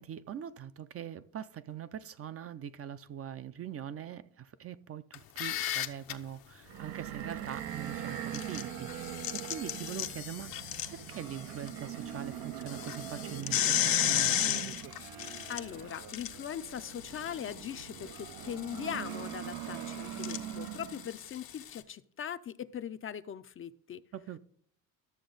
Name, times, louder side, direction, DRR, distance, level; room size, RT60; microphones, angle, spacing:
voice 1, 0.0-14.6 24.1-24.4, right 9 dB, 40° right, 0.5 m, -43 dB
sound 1, 5.1-6.1 8.1-11.7 12.1-12.2 12.6-21.8, left 12 dB, 75° left, 0.8 m, -35 dB
sound 2, 6.7-21.2, right 11 dB, 90° right, 0.7 m, -42 dB
sound 3, 11.6-16.9 17.5-19.8, right 8 dB, 60° right, 1.0 m, -53 dB
voice 2, 15.5-24.0, left 9 dB, 35° left, 0.4 m, -40 dB
12.0 x 6.9 x 3.9 m
cardioid pair, 105°, 36 cm